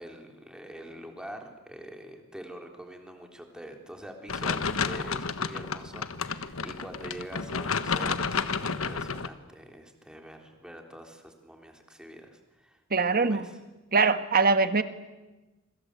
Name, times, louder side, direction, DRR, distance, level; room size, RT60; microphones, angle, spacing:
voice 1, 0.0-12.8 13.1-13.5, equal, 5° right, 3 dB, 3.5 m, -45 dB
sound 1, 4.3-9.3, left 5 dB, 70° left, 1.4 m, -31 dB
voice 2, 12.9-13.5 13.9-14.8, right 4 dB, 45° right, 10 dB, 1.6 m, -22 dB
27.5 x 25.0 x 8.3 m, 1.1 s
head